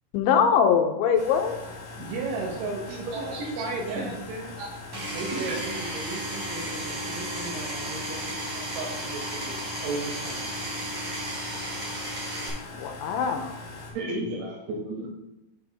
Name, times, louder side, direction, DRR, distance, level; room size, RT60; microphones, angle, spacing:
voice 1, 0.1-1.5 2.0-2.1 12.7-13.5, left 7 dB, 90° left, 6 dB, 3.0 m, -22 dB
sound 1, 1.2-13.9, left 3 dB, 60° left, 2.8 m, -42 dB
voice 2, 2.0-4.6 5.1-9.6 9.8-10.5, right 3 dB, 85° right, -1 dB, 3.6 m, -35 dB
voice 3, 2.9-4.0 4.6-4.7 5.3-5.6 13.9-15.1, right 2 dB, 70° right, -3 dB, 3.6 m, -33 dB
Power tool, 4.9-12.5, right 1 dB, 30° right, 3.4 m, -34 dB
7.7 x 6.9 x 3.4 m, 0.95 s
omnidirectional pair, 5.3 m